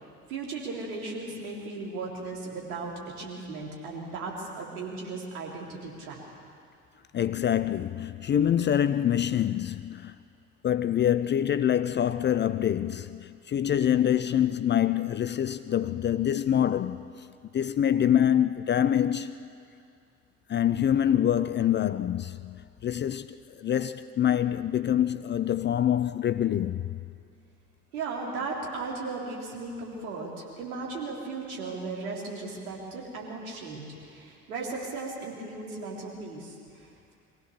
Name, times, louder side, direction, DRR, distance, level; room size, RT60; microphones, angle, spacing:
voice 1, 0.3-6.2 27.9-37.1, right 3 dB, 70° right, 3.8 m, -36 dB
voice 2, 7.1-10.1 10.6-17.3 17.5-19.3 20.5-27.0, left 10 dB, 25° left, 0.5 m, -25 dB
24.0 x 16.0 x 6.8 m
figure-of-eight pair, 55°, 44 cm